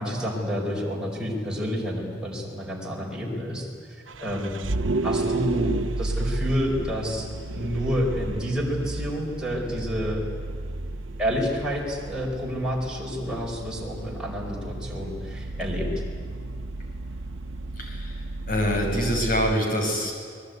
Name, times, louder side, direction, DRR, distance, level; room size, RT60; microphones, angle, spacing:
voice 1, 0.0-3.7 4.2-4.5 5.0-7.3 7.5-10.2 11.2-15.9, equal, 5° right, -3 dB, 5.0 m, -29 dB
Vehicle, 4.1-19.5, right 2 dB, 80° right, 0.9 m, -32 dB
voice 2, 17.8-20.1, equal, 50° left, 2 dB, 6.3 m, -25 dB
28.0 x 20.0 x 9.5 m, 2.1 s
head